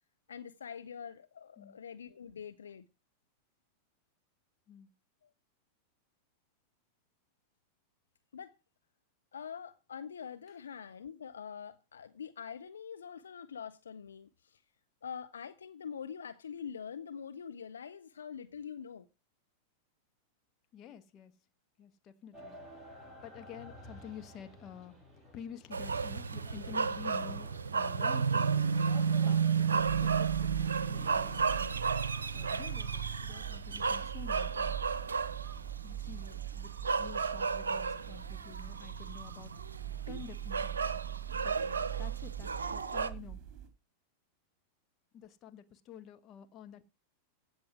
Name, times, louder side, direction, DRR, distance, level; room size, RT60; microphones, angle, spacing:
voice 1, 0.3-2.9 5.2-5.3 8.3-8.5 9.3-14.6 15.0-19.1, left 7 dB, 70° left, 0.7 m, -44 dB
voice 2, 20.7-21.4 21.8-22.6 23.2-25.0 25.3-28.7 29.2-31.8 32.3-34.8 35.8-39.5 40.1-40.9 41.3-43.4 45.1-46.9, left 8 dB, 35° left, 1.3 m, -50 dB
sound 1, 22.3-31.4, equal, 5° left, 7.0 m, -53 dB
sound 2, 25.7-43.1, right 5 dB, 70° right, 0.8 m, -33 dB
sound 3, 29.8-43.7, right 13 dB, 30° right, 3.1 m, -42 dB
16.0 x 6.3 x 6.1 m
figure-of-eight pair, 90°, 0 cm